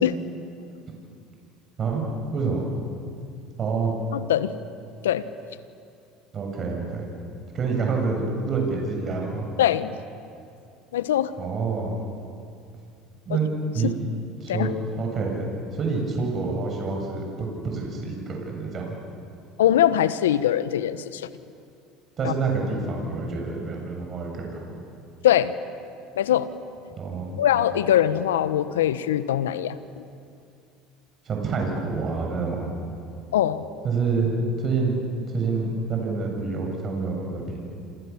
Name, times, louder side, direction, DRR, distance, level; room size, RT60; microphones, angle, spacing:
voice 1, 2.3-2.6 3.6-3.9 6.3-7.1 7.5-9.5 11.4-12.0 13.3-13.5 13.7-14.1 14.4-14.7 15.0-19.0 22.2-24.6 27.0-27.4 31.2-32.7 33.8-35.0 35.3-37.6, right 4 dB, 40° right, 0 dB, 7.4 m, -27 dB
voice 2, 4.1-4.6 5.0-5.3 9.6-10.0 10.9-11.3 13.3-13.4 13.8-13.9 14.5-14.7 19.6-21.3 22.2-22.3 25.2-25.5 26.1-26.5 27.4-30.0 33.3-33.7, left 11 dB, 85° left, 14 dB, 1.1 m, -22 dB
28.0 x 27.5 x 7.3 m, 2.4 s
hypercardioid pair, 80°, 0 cm